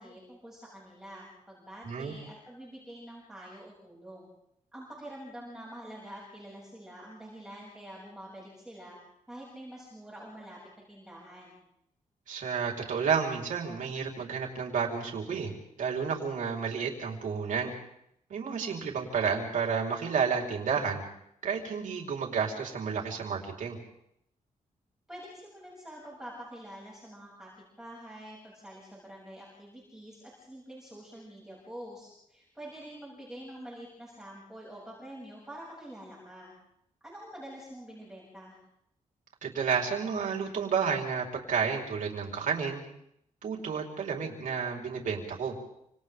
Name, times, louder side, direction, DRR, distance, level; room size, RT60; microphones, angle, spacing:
voice 1, 0.0-4.3 4.7-9.0 9.3-11.6 25.1-36.5 37.0-38.6, right 1 dB, 5° right, -6 dB, 7.9 m, -46 dB
voice 2, 12.3-17.7 18.3-21.0 21.4-23.8 39.4-42.8 43.4-45.5, right 6 dB, 70° right, 0 dB, 4.7 m, -31 dB
29.5 x 27.0 x 3.9 m, 0.77 s
wide cardioid pair, 170°, 14 cm